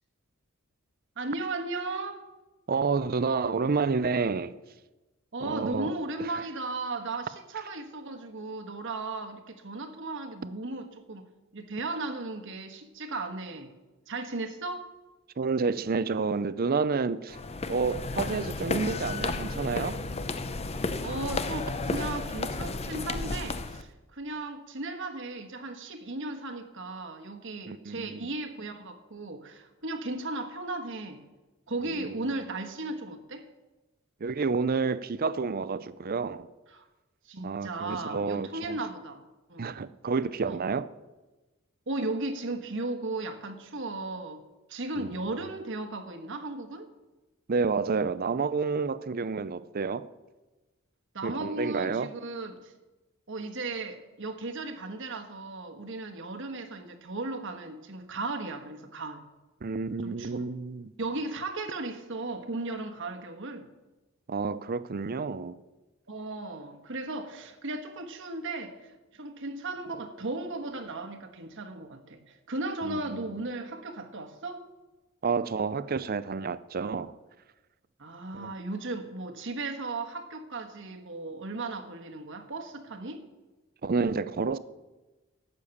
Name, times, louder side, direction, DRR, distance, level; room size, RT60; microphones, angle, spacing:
voice 1, 1.2-2.3 5.3-11.3 11.5-13.7 14.1-14.9 21.0-31.2 31.7-33.5 36.7-36.8 37.2-39.2 39.5-39.8 40.4-40.6 41.9-44.4 44.7-46.9 51.1-52.7 53.3-59.2 60.0-60.5 61.0-63.7 66.1-74.7 78.0-83.2, right 2 dB, 60° right, 1.3 m, -36 dB
voice 2, 2.7-4.5 5.4-5.9 6.2-6.4 15.4-17.4 17.7-20.0 27.7-28.3 31.9-32.1 34.2-36.5 37.4-38.8 39.6-40.9 45.0-45.1 47.5-50.1 51.2-52.1 59.6-60.9 64.3-65.6 72.8-73.2 75.2-77.1 78.3-78.5 83.8-84.6, right 4 dB, 45° right, 0.5 m, -29 dB
sound 1, 17.3-23.8, left 3 dB, 30° left, 0.6 m, -32 dB
12.0 x 8.3 x 7.1 m
head